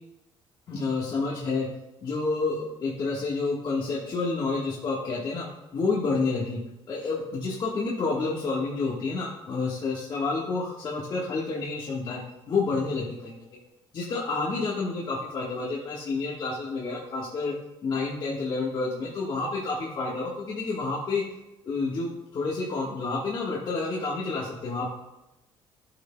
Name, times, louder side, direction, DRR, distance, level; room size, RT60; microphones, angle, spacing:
voice 1, 0.7-1.7 2.0-5.5 5.7-6.6 6.9-12.2 12.5-13.4 13.9-17.5 17.8-21.2 21.6-24.9, left 3 dB, 45° left, -5 dB, 1.4 m, -29 dB
13.5 x 6.1 x 2.2 m, 0.96 s
cardioid pair, 115°, 10 cm